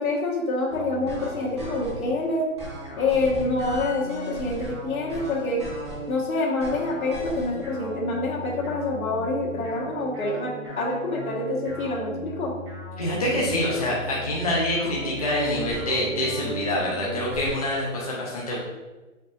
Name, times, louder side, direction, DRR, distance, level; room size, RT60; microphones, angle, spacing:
voice 1, 0.0-2.5 3.0-5.6 6.1-12.5, left 2 dB, 80° left, -3 dB, 1.5 m, -27 dB
sound 1, 0.7-2.1 2.6-6.2 6.6-17.5, right 1 dB, 20° right, 0.6 m, -36 dB
voice 2, 13.0-18.6, left 1 dB, 30° left, -4 dB, 0.4 m, -26 dB
5.4 x 3.8 x 2.5 m, 1.2 s
hypercardioid pair, 170°, 41 cm